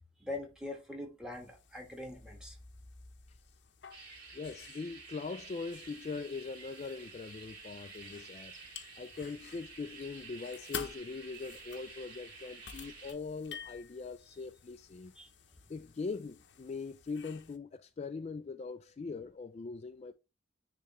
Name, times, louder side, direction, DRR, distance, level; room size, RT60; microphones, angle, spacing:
voice 1, 0.2-2.6 8.9-9.0 15.2-15.3, left 2 dB, 5° right, 1.5 m, -43 dB
sound 1, 1.3-17.6, left 7 dB, 65° left, 0.7 m, -51 dB
sound 2, 3.9-13.1, right 4 dB, 50° right, 2.9 m, -51 dB
voice 2, 4.3-8.5 9.0-15.1 15.7-20.1, left 4 dB, 35° left, 0.3 m, -41 dB
9.9 x 3.3 x 3.0 m
head